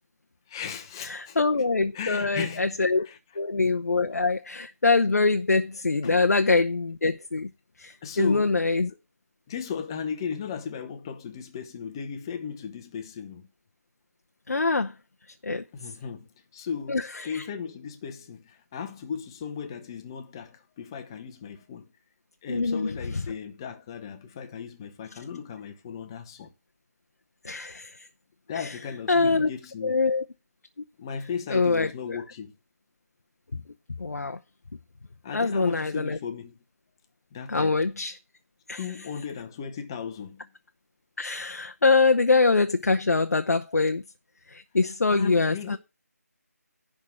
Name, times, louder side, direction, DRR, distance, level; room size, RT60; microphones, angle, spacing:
voice 1, 0.5-1.4 1.9-2.8 3.0-3.2 6.0-6.2 8.0-8.5 9.5-13.5 15.7-21.9 22.4-26.5 28.5-30.0 31.0-32.5 35.2-36.5 37.3-37.8 38.8-40.5 45.1-45.8, left 7 dB, 15° left, 0.8 m, -36 dB
voice 2, 1.0-3.1 3.4-7.5 7.8-8.9 14.5-14.9 15.3-15.9 16.9-17.5 22.5-23.2 27.4-28.1 28.5-28.8 29.1-29.5 29.8-30.2 31.5-32.2 33.5-33.6 34.0-34.4 35.3-36.2 37.5-38.2 38.7-38.8 41.2-44.0 44.5-45.8, left 3 dB, 65° left, 0.7 m, -24 dB
11.0 x 3.7 x 7.5 m
figure-of-eight pair, 165°, 9 cm